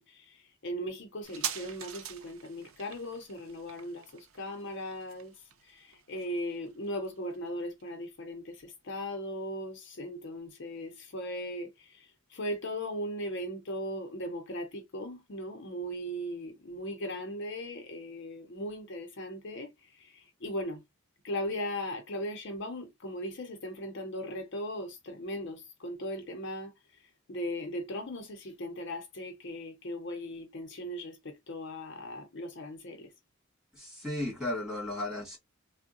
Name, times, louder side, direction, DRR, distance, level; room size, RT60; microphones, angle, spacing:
voice 1, 0.0-5.3 5.6-20.8 21.2-26.7 27.3-33.1, equal, 60° left, 0.7 m, -38 dB
sound 1, 1.2-8.3 8.6-8.7, right 9 dB, 85° right, 0.5 m, -44 dB
voice 2, 33.7-35.4, left 1 dB, ahead, 2.0 m, -35 dB
3.5 x 2.1 x 2.6 m
head